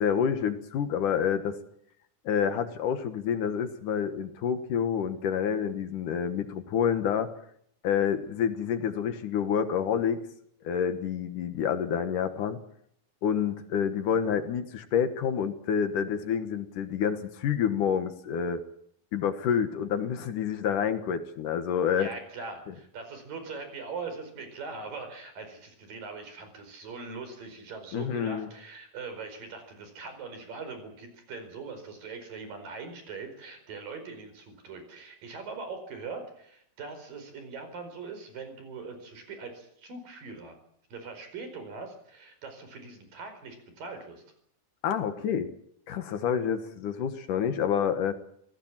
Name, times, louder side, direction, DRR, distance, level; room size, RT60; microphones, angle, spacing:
voice 1, 0.0-1.6 2.3-7.3 7.8-10.2 10.6-12.6 13.2-18.6 19.1-22.1 22.7-22.8 27.9-28.5 44.8-45.5 45.9-48.2, left 8 dB, 65° left, 9 dB, 2.8 m, -28 dB
voice 2, 22.0-40.6 40.9-44.2, right 4 dB, 70° right, 7 dB, 6.4 m, -41 dB
27.0 x 17.5 x 7.4 m, 0.70 s
omnidirectional pair, 4.1 m